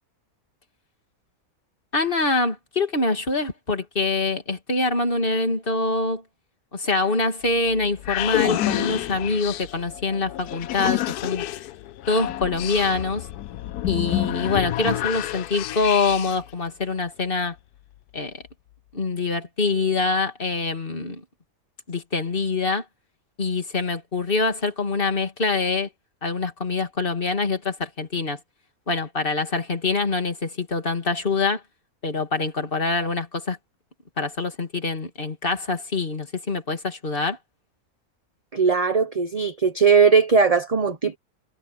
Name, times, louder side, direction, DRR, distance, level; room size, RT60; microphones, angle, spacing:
voice 1, 1.9-6.2 6.7-11.4 12.1-13.3 13.9-17.6 18.1-18.4 18.9-21.2 21.9-22.8 23.4-25.9 26.2-28.4 28.9-31.6 32.0-33.6 34.2-37.4, left 3 dB, 35° left, 2.9 m, -25 dB
sound 1, 7.5-16.5, left 14 dB, 85° left, 1.2 m, -29 dB
voice 2, 38.5-41.2, right 5 dB, 25° right, 1.1 m, -19 dB
omnidirectional pair, 1.6 m